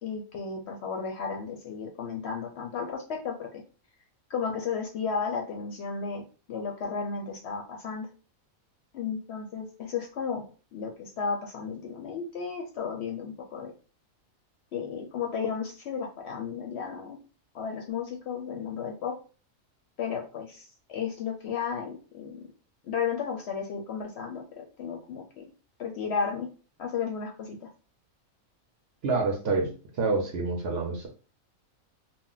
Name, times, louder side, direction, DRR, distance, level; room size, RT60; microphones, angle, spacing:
voice 1, 0.0-3.6 4.3-6.2 6.5-8.1 8.9-10.4 10.7-13.7 14.7-17.2 17.5-19.2 20.0-22.4 22.8-25.5 25.8-26.5 26.8-27.7, left 6 dB, 65° left, 2 dB, 0.7 m, -33 dB
voice 2, 29.0-29.7 30.0-31.1, right 3 dB, 60° right, 2 dB, 0.7 m, -27 dB
2.3 x 2.0 x 3.8 m, 0.36 s
omnidirectional pair, 1.5 m